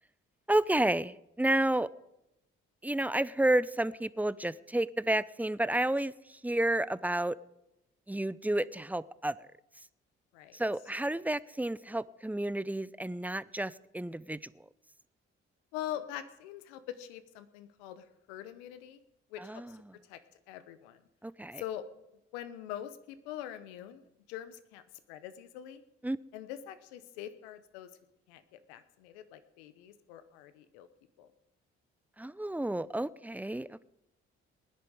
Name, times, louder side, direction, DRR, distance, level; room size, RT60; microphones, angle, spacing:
voice 1, 0.5-1.9 2.8-6.1 6.4-7.4 8.1-9.4 10.5-14.5 19.4-19.7 21.2-21.6 26.0-26.2 32.2-33.8, right 1 dB, 5° right, 17 dB, 0.6 m, -31 dB
voice 2, 15.7-19.0 19.3-19.8 20.0-20.2 20.5-21.0 21.6-21.8 22.3-24.8 25.1-25.8 26.3-27.9 28.3-30.9 31.2-31.3, left 11 dB, 90° left, 12 dB, 0.9 m, -43 dB
20.0 x 10.5 x 4.8 m, 0.87 s
hypercardioid pair, 45°, 32 cm